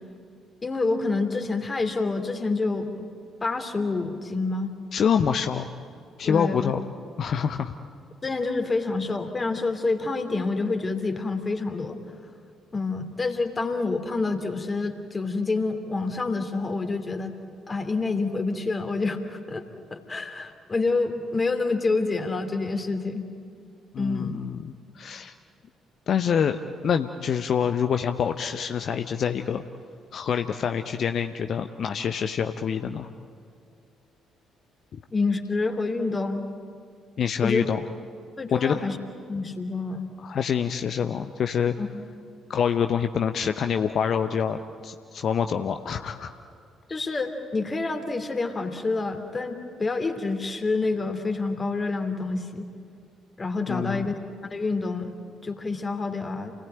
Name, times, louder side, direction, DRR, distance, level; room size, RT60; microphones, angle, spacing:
voice 1, 0.6-3.1 3.4-4.7 6.2-6.7 8.2-12.0 12.7-17.3 17.7-23.2 24.0-24.4 35.1-36.4 37.4-37.7 38.4-39.0 39.3-40.1 41.8-41.9 46.9-52.7 53.4-54.2 54.5-55.1 55.4-56.5, left 3 dB, 25° left, 6 dB, 2.7 m, -27 dB
voice 2, 4.9-5.7 6.2-6.8 7.2-7.7 23.9-25.3 26.1-26.6 26.8-29.6 30.1-33.1 37.2-37.8 38.5-38.7 40.2-41.7 42.5-46.3 53.7-54.1, left 7 dB, 50° left, 8 dB, 0.8 m, -26 dB
28.5 x 18.5 x 9.0 m, 2.3 s
figure-of-eight pair, 45°, 0 cm